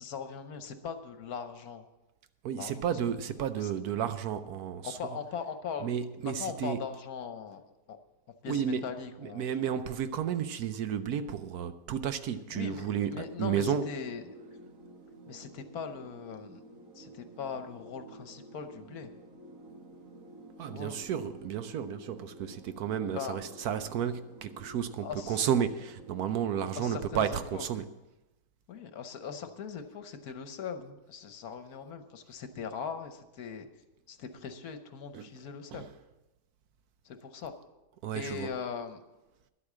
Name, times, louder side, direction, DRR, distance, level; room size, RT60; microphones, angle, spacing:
voice 1, 0.0-1.8 2.6-2.7 3.1-3.2 3.6-3.7 4.8-5.9 6.2-7.6 7.9-8.0 8.4-9.5 12.5-14.3 15.3-16.6 16.9-19.1 20.6-21.0 23.1-23.4 25.0-25.4 26.8-27.6 28.7-33.7 34.1-35.9 37.0-37.5 38.1-39.0, left 6 dB, 65° left, 1.3 m, -40 dB
voice 2, 2.4-5.2 5.8-6.8 8.5-8.8 9.2-13.9 20.6-27.9 35.1-35.3 35.7-35.9 38.0-38.5, right 8 dB, 70° right, 1.1 m, -32 dB
sound 1, 13.0-27.4, right 1 dB, 50° right, 1.7 m, -51 dB
11.0 x 8.3 x 7.4 m
omnidirectional pair, 1.8 m